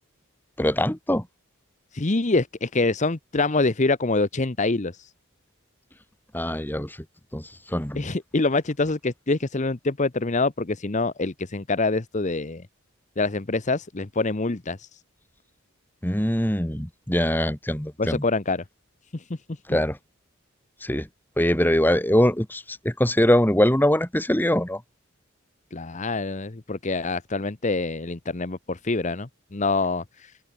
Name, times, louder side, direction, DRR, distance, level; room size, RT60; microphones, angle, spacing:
voice 1, 0.6-1.2 6.3-7.0 7.3-8.1 16.0-18.2 19.7-20.0 20.8-21.1 21.4-24.8, left 1 dB, 10° left, 2.0 m, -22 dB
voice 2, 1.9-5.1 7.9-12.6 13.2-15.0 18.0-18.6 19.1-19.6 25.7-30.3, left 3 dB, 35° left, 0.9 m, -25 dB
open air
head